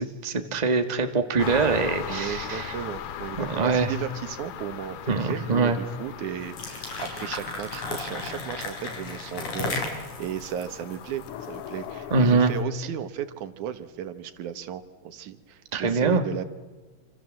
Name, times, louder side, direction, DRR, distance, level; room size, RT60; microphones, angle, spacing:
voice 1, 0.0-2.7 3.4-3.9 5.1-5.8 12.1-12.5 15.7-16.2, right 4 dB, 20° right, 7 dB, 1.3 m, -23 dB
sound 1, 1.4-12.6, left 9 dB, 65° left, 1.7 m, -39 dB
voice 2, 2.1-16.4, right 10 dB, 90° right, 11 dB, 2.8 m, -35 dB
sound 2, 6.4-11.7, left 3 dB, 90° left, 5.4 m, -34 dB
27.0 x 27.0 x 7.6 m, 1.3 s
omnidirectional pair, 3.3 m